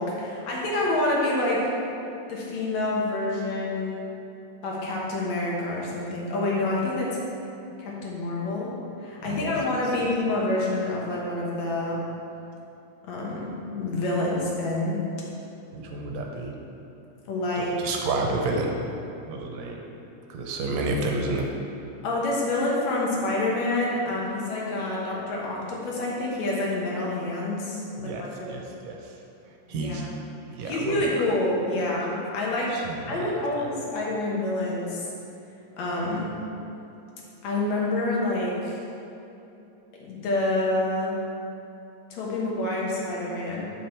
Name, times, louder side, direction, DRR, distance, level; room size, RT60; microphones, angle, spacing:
voice 1, 0.0-1.6 2.3-4.1 4.6-7.1 7.8-8.7 9.0-12.0 13.1-15.0 17.3-17.8 22.0-28.6 29.7-30.0 30.6-32.7 33.1-35.0 35.8-36.3 37.4-38.8 40.0-41.1 42.1-43.7, left 2 dB, 70° left, -4 dB, 2.5 m, -27 dB
voice 2, 15.7-16.5 17.6-18.7 19.2-19.8 20.3-21.5 28.0-29.2 29.5-30.1 30.5-31.3 32.7-33.7, right 3 dB, 75° right, 1 dB, 1.9 m, -31 dB
8.5 x 5.6 x 4.4 m, 2.9 s
omnidirectional pair, 3.3 m